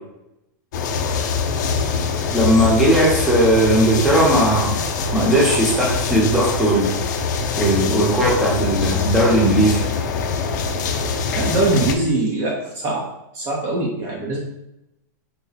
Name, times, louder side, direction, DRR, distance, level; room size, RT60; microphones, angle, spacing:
sound 1, 0.7-11.9, left 5 dB, 70° left, 0.5 m, -24 dB
voice 1, 2.3-4.7 5.1-6.9 7.6-9.8, right 1 dB, ahead, -5 dB, 0.9 m, -17 dB
voice 2, 11.3-13.0 13.3-14.4, right 2 dB, 30° right, -2 dB, 0.7 m, -22 dB
4.1 x 2.1 x 4.1 m, 0.86 s
supercardioid pair, 150°, 10 cm